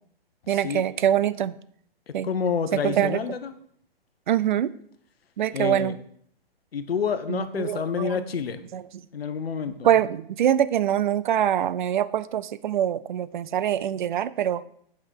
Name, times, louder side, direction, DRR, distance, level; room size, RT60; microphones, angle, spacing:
voice 1, 0.5-1.5 2.1-2.3 2.7-3.3 4.3-4.7 5.4-6.0 7.3-8.2 8.7-8.8 9.8-14.6, right 10 dB, 55° right, 17 dB, 0.5 m, -24 dB
voice 2, 2.2-3.5 5.5-5.9 6.7-8.6 9.1-9.9, left 6 dB, 80° left, 10 dB, 1.0 m, -28 dB
8.7 x 5.7 x 4.6 m, 0.65 s
hypercardioid pair, 145°, 30 cm